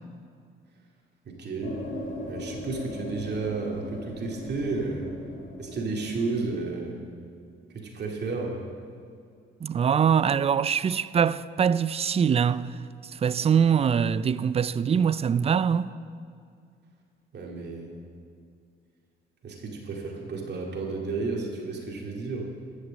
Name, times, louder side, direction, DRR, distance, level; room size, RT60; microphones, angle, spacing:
voice 1, 1.3-1.8 2.3-5.1 5.6-7.0 7.7-8.6 17.3-17.9 19.4-22.4, right 3 dB, 55° right, 2.3 m, -32 dB
sound 1, 1.6-6.7, left 1 dB, 75° left, 2.1 m, -39 dB
voice 2, 9.6-15.9, right 7 dB, 30° right, 0.4 m, -23 dB
14.0 x 6.5 x 7.5 m
cardioid pair, 90°, 20 cm